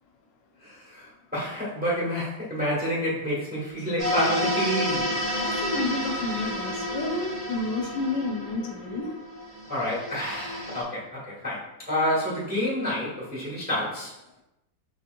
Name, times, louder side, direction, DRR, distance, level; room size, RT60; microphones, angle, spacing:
voice 1, 0.6-5.2 9.7-14.2, equal, 5° right, -6 dB, 1.0 m, -29 dB
sound 1, 4.0-10.8, equal, 35° right, 1.0 m, -30 dB
voice 2, 5.4-9.1, left 3 dB, 75° left, 1 dB, 1.2 m, -30 dB
4.9 x 2.8 x 2.5 m, 0.87 s
omnidirectional pair, 2.0 m